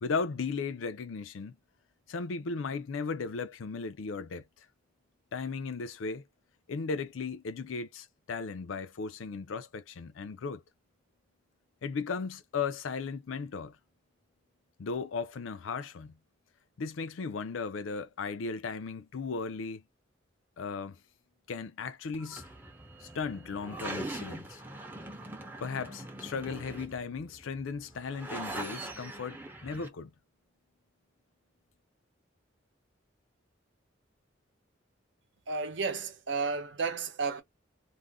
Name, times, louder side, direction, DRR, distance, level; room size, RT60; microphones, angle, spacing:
voice 1, 0.0-1.5 2.1-4.4 5.3-6.2 6.7-10.6 11.8-13.7 14.8-16.1 16.8-19.8 20.6-21.0 21.5-22.4 23.0-24.6 25.6-30.1, left 5 dB, 85° left, 0.5 m, -36 dB
sound 1, 22.1-29.9, right 2 dB, 10° right, 0.6 m, -42 dB
voice 2, 35.5-37.4, right 4 dB, 65° right, 0.8 m, -32 dB
2.5 x 2.1 x 3.4 m
head